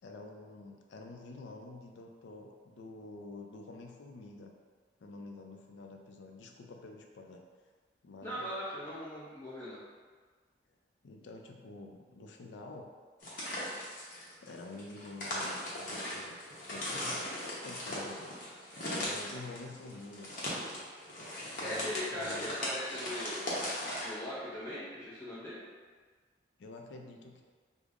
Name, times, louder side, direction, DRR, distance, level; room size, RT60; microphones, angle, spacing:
voice 1, 0.0-4.5 5.0-7.4 8.0-8.5 11.0-12.9 14.4-16.4 16.7-18.3 18.9-20.3 20.9-22.7 26.6-27.4, left 2 dB, 80° left, 2 dB, 0.4 m, -48 dB
voice 2, 8.2-9.8 21.3-23.5 24.0-25.6, equal, 15° left, -10 dB, 0.5 m, -40 dB
sound 1, 13.2-24.1, left 1 dB, 45° left, 0.7 m, -38 dB
5.0 x 2.0 x 2.4 m, 1.5 s
head